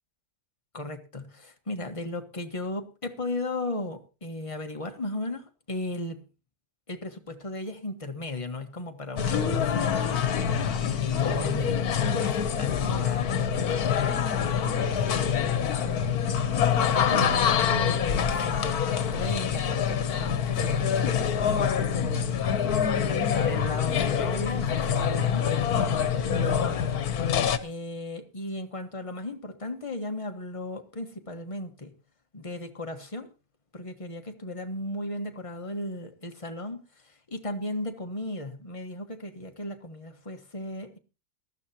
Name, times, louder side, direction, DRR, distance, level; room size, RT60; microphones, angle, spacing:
voice 1, 0.7-6.2 6.9-10.3 11.0-16.2 16.6-18.8 19.1-22.4 23.0-26.8 27.6-31.9 32.3-33.3 33.7-41.0, left 2 dB, 20° left, 1.5 m, -36 dB
sound 1, 9.2-27.6, left 8 dB, 75° left, 1.5 m, -26 dB
19.5 x 13.5 x 2.9 m
omnidirectional pair, 1.6 m